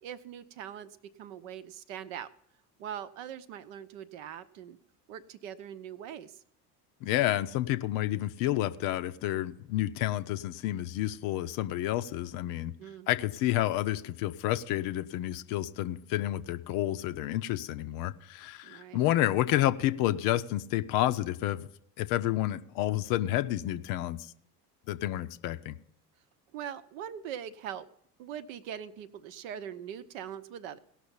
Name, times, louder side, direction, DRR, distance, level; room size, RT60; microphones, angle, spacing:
voice 1, 0.0-2.3 2.8-4.8 5.1-6.4 12.8-13.1 18.6-19.0 26.5-27.9 28.2-30.8, right 9 dB, 55° right, 12 dB, 0.8 m, -42 dB
voice 2, 7.0-12.7 13.1-21.7 22.0-24.3 24.9-25.8, left 14 dB, 45° left, 12 dB, 0.7 m, -30 dB
18.0 x 6.1 x 5.5 m, 0.72 s
figure-of-eight pair, 65°, 48 cm